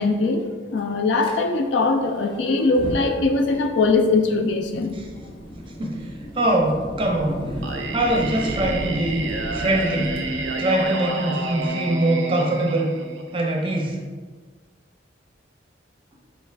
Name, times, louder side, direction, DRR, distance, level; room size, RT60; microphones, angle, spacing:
voice 1, 0.0-4.9, left 3 dB, 65° left, 5 dB, 0.4 m, -21 dB
Fire, 1.2-1.3 2.6-11.7, equal, 25° left, 0.6 m, -35 dB
voice 2, 6.4-7.5 7.9-9.2 9.5-10.2 10.6-12.9 13.3-14.0, right 1 dB, 25° right, 0 dB, 0.5 m, -22 dB
Singing, 7.6-13.6, right 2 dB, 75° right, 0.5 m, -30 dB
5.1 x 2.4 x 3.3 m, 1.4 s
head